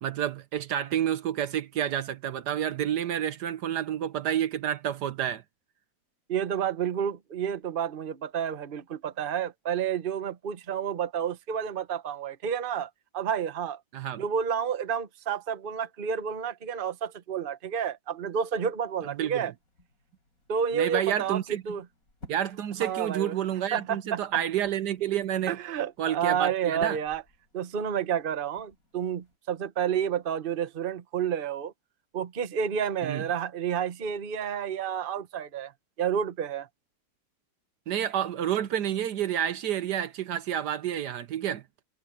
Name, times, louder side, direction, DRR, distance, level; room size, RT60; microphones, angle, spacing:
voice 1, 0.0-5.4 13.9-14.2 19.2-19.5 20.7-21.6 22.3-25.6 26.0-27.0 33.0-33.2 37.9-41.6, right 10 dB, 70° right, 1.4 m, -29 dB
voice 2, 6.3-13.8 14.2-19.5 20.5-21.4 21.7-21.8 22.8-23.3 23.7-24.2 25.5-27.2 27.5-31.7 32.1-35.7 36.0-36.7, right 8 dB, 35° right, 1.0 m, -30 dB
sound 1, 18.5-29.4, left 1 dB, 50° left, 6.6 m, -56 dB
omnidirectional pair, 1.9 m